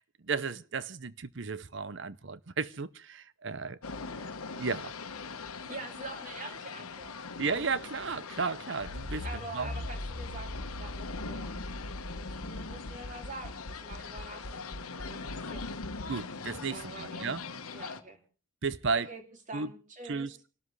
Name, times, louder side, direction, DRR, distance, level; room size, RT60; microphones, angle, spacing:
voice 1, 0.0-3.8 4.6-4.9 7.4-9.3 9.5-9.8 16.1-17.4 18.6-19.1 19.5-19.7 20.0-20.3, right 4 dB, 55° right, 0.7 m, -34 dB
sound 1, 3.8-18.0, left 4 dB, 85° left, 1.3 m, -42 dB
voice 2, 5.7-7.1 9.2-11.5 12.1-15.8 16.7-17.3 17.7-18.2 18.9-20.3, right 3 dB, 35° right, 2.7 m, -45 dB
Accelerating revving vroom, 8.8-16.1, left 1 dB, 60° left, 1.1 m, -41 dB
29.0 x 13.0 x 3.2 m
head